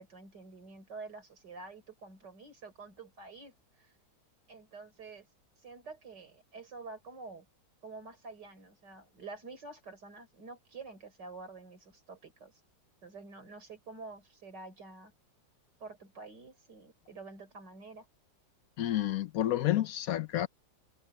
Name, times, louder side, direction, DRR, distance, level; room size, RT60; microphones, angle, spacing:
voice 1, 0.0-3.9 4.5-5.3 5.6-7.5 7.8-12.6 13.0-15.1 15.8-18.1, right 3 dB, 65° right, 5.0 m, -48 dB
voice 2, 18.8-20.5, left 13 dB, 65° left, 1.0 m, -30 dB
omnidirectional pair, 2.0 m